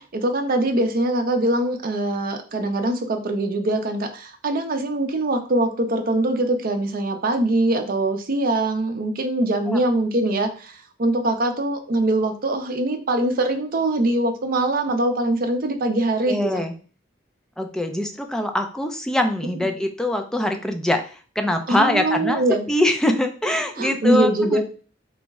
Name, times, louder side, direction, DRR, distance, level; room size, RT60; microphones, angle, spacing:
voice 1, 0.0-16.7 21.7-22.7 23.8-24.6, right 1 dB, 50° right, 5 dB, 0.5 m, -23 dB
voice 2, 16.3-16.7 17.6-22.4 22.7-24.6, left 1 dB, 5° left, 4 dB, 0.4 m, -23 dB
3.9 x 2.1 x 3.5 m, 0.38 s
head